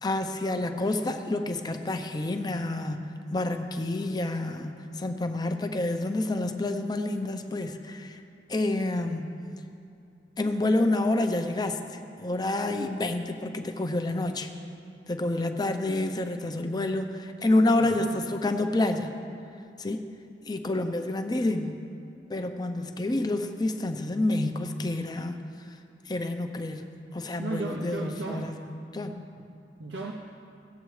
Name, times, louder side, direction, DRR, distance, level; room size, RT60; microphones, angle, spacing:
voice 1, 0.0-8.2 8.5-9.4 10.4-11.8 12.2-14.5 15.1-19.1 19.8-20.0 20.5-21.8 22.3-25.4 26.1-29.3, left 2 dB, 25° left, 7 dB, 0.6 m, -28 dB
voice 2, 17.8-18.1 27.4-28.6 29.4-30.1, right 2 dB, 80° right, 1 dB, 0.7 m, -36 dB
18.0 x 7.9 x 3.2 m, 2.6 s
head